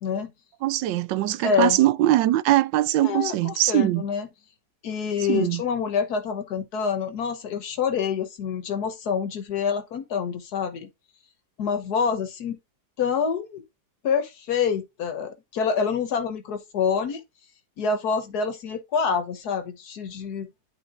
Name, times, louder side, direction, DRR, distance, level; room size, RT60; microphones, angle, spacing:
voice 1, 0.6-4.0 5.3-5.6, right 14 dB, 85° right, 1.3 m, -21 dB
voice 2, 1.4-1.8 3.0-4.3 4.8-10.9 11.6-12.6 13.0-13.6 14.0-17.2 17.8-20.5, left 6 dB, 65° left, 1.5 m, -26 dB
11.0 x 4.2 x 2.5 m
omnidirectional pair, 1.9 m